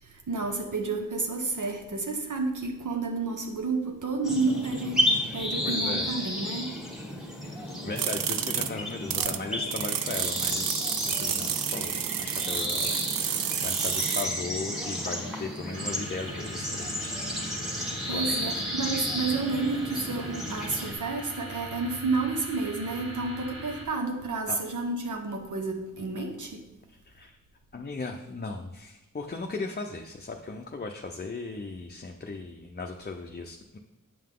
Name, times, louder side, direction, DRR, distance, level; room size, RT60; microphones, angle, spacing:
voice 1, 0.0-6.8 18.1-26.7, right 3 dB, 65° right, 3 dB, 0.9 m, -30 dB
sound 1, 4.2-20.9, left 1 dB, ahead, 1.4 m, -32 dB
voice 2, 5.6-6.3 7.5-12.9 13.2-17.3 18.1-18.5 24.5-24.6 26.9-27.4 27.7-33.8, left 3 dB, 30° left, 3 dB, 0.6 m, -37 dB
sound 2, 8.0-9.4 9.7-14.2, right 9 dB, 85° right, 0.5 m, -30 dB
sound 3, 15.7-23.9, equal, 40° right, 1.9 m, -42 dB
8.5 x 5.7 x 3.7 m, 1.0 s
wide cardioid pair, 75°, 33 cm